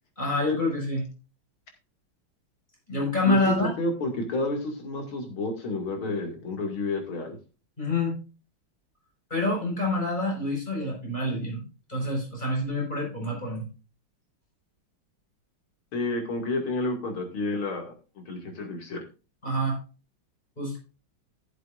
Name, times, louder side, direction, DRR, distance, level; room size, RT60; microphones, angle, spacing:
voice 1, 0.2-1.1 2.9-3.7 7.8-8.2 9.3-13.7 19.4-19.8 20.6-20.8, left 1 dB, 20° left, -1 dB, 5.5 m, -27 dB
voice 2, 3.3-7.4 15.9-17.9 18.3-19.0, left 2 dB, 75° left, 4 dB, 3.2 m, -30 dB
15.5 x 7.7 x 2.5 m, 0.32 s
omnidirectional pair, 2.3 m